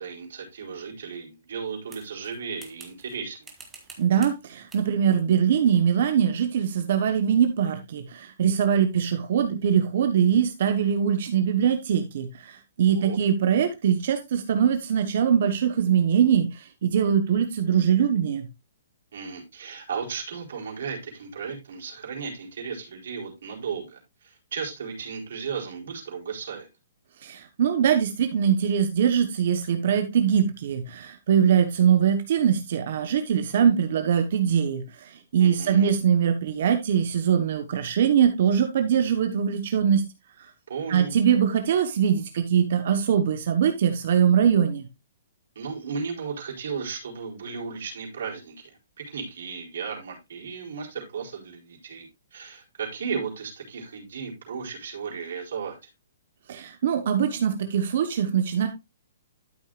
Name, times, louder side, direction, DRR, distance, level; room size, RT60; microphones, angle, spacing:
voice 1, 0.0-3.5 12.9-13.2 19.1-26.7 35.4-35.9 40.7-41.2 45.6-55.8, right 5 dB, 60° right, 4.1 m, -35 dB
sound 1, 1.9-3.2 3.4-4.4 4.7-4.9 5.6-5.9, right 4 dB, 10° right, 1.4 m, -48 dB
voice 2, 4.0-18.5 27.2-40.0 40.9-44.9 56.5-58.7, right 8 dB, 45° right, 1.0 m, -22 dB
12.0 x 6.3 x 2.4 m
hypercardioid pair, 175°, 0 cm